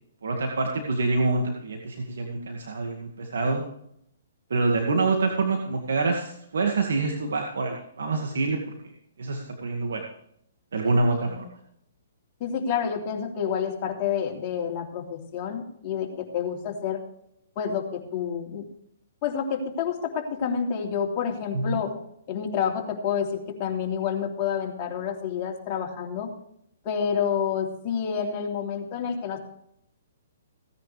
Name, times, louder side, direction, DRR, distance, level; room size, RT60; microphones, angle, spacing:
voice 1, 0.2-3.6 4.5-8.6 9.2-10.0 10.7-11.4 21.5-21.8, right 3 dB, 80° right, 2 dB, 2.1 m, -26 dB
voice 2, 12.4-17.0 17.6-18.6 19.2-21.9 22.3-26.3 26.8-29.4, left 7 dB, 35° left, 0 dB, 3.1 m, -29 dB
16.5 x 10.0 x 3.4 m, 0.71 s
hypercardioid pair, 145°, 0 cm